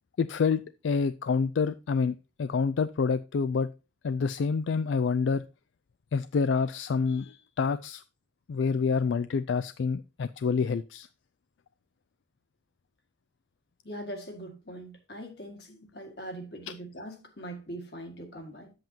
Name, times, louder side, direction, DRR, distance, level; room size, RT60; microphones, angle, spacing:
voice 1, 0.2-3.7 4.0-5.4 6.1-8.0 8.5-11.1 16.7-16.8, left 5 dB, 80° left, 0.4 m, -27 dB
voice 2, 13.8-18.7, right 1 dB, 60° left, 1.9 m, -41 dB
9.1 x 7.8 x 2.8 m
head